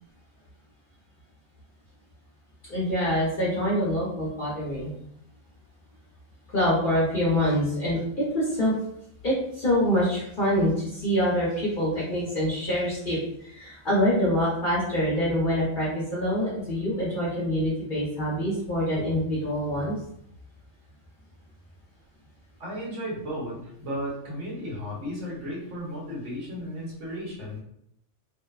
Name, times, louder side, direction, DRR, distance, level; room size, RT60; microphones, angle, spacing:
voice 1, 2.7-4.9 6.5-8.7 9.2-13.2 13.4-19.9, equal, 50° left, -7 dB, 0.7 m, -25 dB
voice 2, 22.6-27.6, equal, 60° right, -4 dB, 1.1 m, -34 dB
2.6 x 2.0 x 2.3 m, 0.73 s
omnidirectional pair, 1.4 m